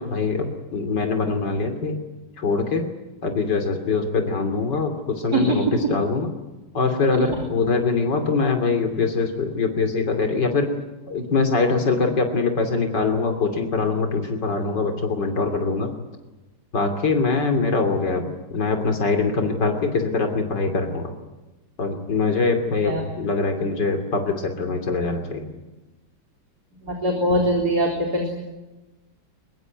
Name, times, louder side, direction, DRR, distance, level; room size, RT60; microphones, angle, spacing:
voice 1, 0.0-2.0 2.4-2.9 3.2-5.6 5.9-6.3 6.7-10.7 11.1-15.9 16.7-21.1 21.8-25.5, left 4 dB, 85° left, 4 dB, 3.5 m, -23 dB
voice 2, 5.3-5.7 22.8-23.0 26.8-28.4, right 1 dB, 65° right, 1 dB, 4.3 m, -22 dB
23.0 x 22.5 x 9.5 m, 1.1 s
omnidirectional pair, 1.8 m